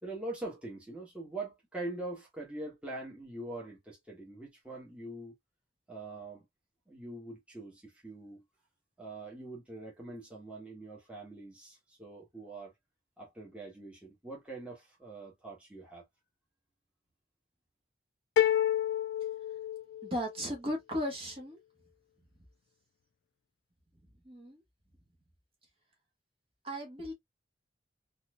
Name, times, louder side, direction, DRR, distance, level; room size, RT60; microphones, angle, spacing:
voice 1, 0.0-5.3 5.9-6.4 6.9-8.4 9.0-12.7 13.2-16.0, right 2 dB, 5° right, 1.4 m, -43 dB
sound 1, 18.4-20.4, left 11 dB, 70° left, 0.3 m, -29 dB
voice 2, 20.0-21.6 24.2-24.6 26.6-27.1, equal, 30° right, 1.5 m, -36 dB
4.1 x 2.7 x 2.5 m
head